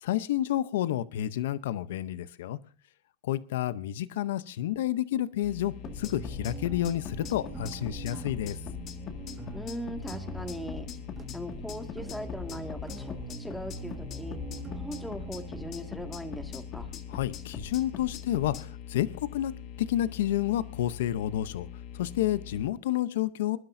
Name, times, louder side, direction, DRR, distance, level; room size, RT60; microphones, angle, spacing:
voice 1, 0.0-2.6 3.2-8.6 17.1-19.5 19.9-21.7 21.9-23.6, left 12 dB, 85° left, 15 dB, 0.7 m, -30 dB
sound 1, 5.4-22.7, left 9 dB, 60° left, 1.2 m, -44 dB
sound 2, 5.8-18.6, left 7 dB, 40° left, 1.9 m, -42 dB
sound 3, 5.9-18.7, right 3 dB, 25° right, 1.6 m, -44 dB
voice 2, 9.5-10.9 11.3-13.1 13.4-14.4 14.7-16.9, equal, 5° left, 5 dB, 1.9 m, -39 dB
26.0 x 11.5 x 2.7 m, 0.37 s
supercardioid pair, 125°, 0 cm